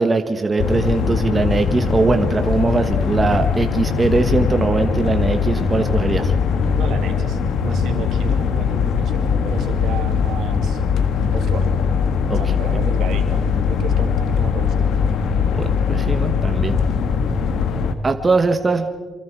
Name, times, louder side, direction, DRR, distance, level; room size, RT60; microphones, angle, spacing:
voice 1, 0.0-6.3 12.3-12.4 15.4-16.7 18.0-18.9, right 3 dB, 25° right, 6 dB, 1.4 m, -20 dB
sound 1, 0.6-18.0, left 6 dB, 75° left, 1.7 m, -20 dB
voice 2, 6.7-10.8 11.3-11.7 12.3-14.9, right 6 dB, 75° right, 5 dB, 2.6 m, -32 dB
26.5 x 25.5 x 4.7 m, 1.5 s
cardioid pair, 90°, 0 cm